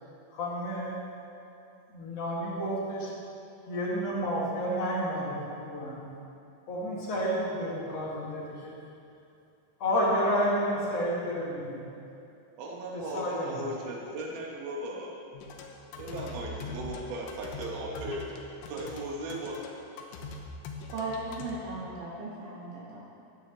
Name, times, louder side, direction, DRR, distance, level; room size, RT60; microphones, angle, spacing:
voice 1, 0.3-1.0 1.9-3.1 3.7-6.1 6.7-8.7 9.8-11.8 12.9-13.6, equal, 50° left, -6 dB, 2.1 m, -30 dB
voice 2, 12.6-15.2 16.0-18.4 18.7-19.5, right 1 dB, 60° right, -2 dB, 2.3 m, -37 dB
sound 1, 15.3-21.5, left 3 dB, 80° left, 3.4 m, -42 dB
voice 3, 20.9-23.0, right 2 dB, 75° right, -7 dB, 3.9 m, -37 dB
17.5 x 9.7 x 3.5 m, 2.7 s
omnidirectional pair, 5.6 m